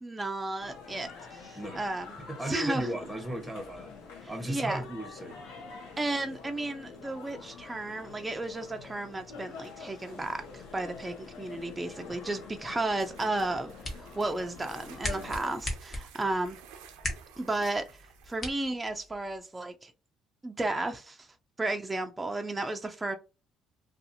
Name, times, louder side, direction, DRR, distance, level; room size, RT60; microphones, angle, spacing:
voice 1, 0.0-2.1 2.5-2.9 4.5-4.8 6.0-13.7 14.0-16.6 17.4-17.9 18.3-19.9 20.4-21.3 21.6-23.2, right 2 dB, 20° right, 0.4 m, -33 dB
sound 1, 0.6-15.6, left 5 dB, 85° left, 0.8 m, -46 dB
voice 2, 2.3-3.9 4.3-5.4 12.0-12.2 16.2-16.4, right 1 dB, ahead, 0.8 m, -36 dB
sound 2, 12.9-18.5, right 7 dB, 90° right, 0.5 m, -53 dB
sound 3, 13.5-19.4, left 1 dB, 40° left, 1.0 m, -40 dB
2.5 x 2.3 x 2.7 m
supercardioid pair, 75°, 0 cm